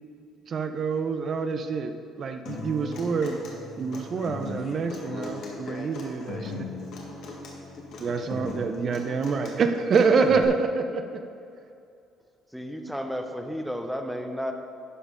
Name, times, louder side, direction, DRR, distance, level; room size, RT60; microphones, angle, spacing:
voice 1, 0.5-3.4 3.8-6.5 8.0-11.2, right 5 dB, 45° right, 7 dB, 0.5 m, -26 dB
Human voice / Acoustic guitar, 2.4-10.4, left 2 dB, 70° left, 1.7 m, -39 dB
voice 2, 4.6-7.0 7.5-8.1, left 3 dB, 40° left, 2 dB, 1.3 m, -42 dB
voice 3, 12.5-14.5, equal, ahead, 4 dB, 0.8 m, -32 dB
11.0 x 5.2 x 5.1 m, 2.5 s
cardioid pair, 120°, 0 cm